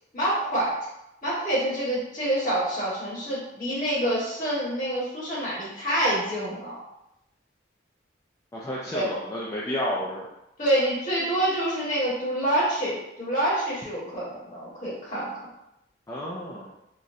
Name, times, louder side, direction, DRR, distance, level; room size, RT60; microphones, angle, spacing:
voice 1, 0.1-0.7 1.2-6.8 8.9-9.0 10.6-15.3, right 1 dB, 45° left, -7 dB, 1.3 m, -27 dB
voice 2, 8.5-10.3 16.1-16.7, equal, 20° left, -6 dB, 0.3 m, -31 dB
3.8 x 2.1 x 2.6 m, 0.86 s
head